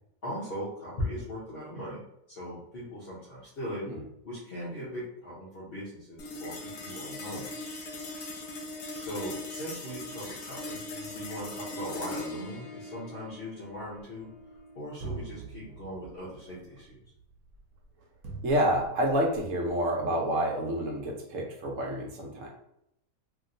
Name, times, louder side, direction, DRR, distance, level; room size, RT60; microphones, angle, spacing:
voice 1, 0.2-2.0 2.3-3.9 4.2-7.7 9.0-14.3 14.7-17.0, equal, 45° left, -9 dB, 1.0 m, -39 dB
sound 1, 6.2-16.8, left 2 dB, 85° left, 1.2 m, -41 dB
sound 2, 13.7-14.6 15.0-19.9, right 4 dB, 80° right, 1.1 m, -45 dB
voice 2, 18.4-22.5, equal, 65° right, -1 dB, 1.1 m, -28 dB
3.0 x 2.7 x 2.6 m, 0.78 s
omnidirectional pair, 1.6 m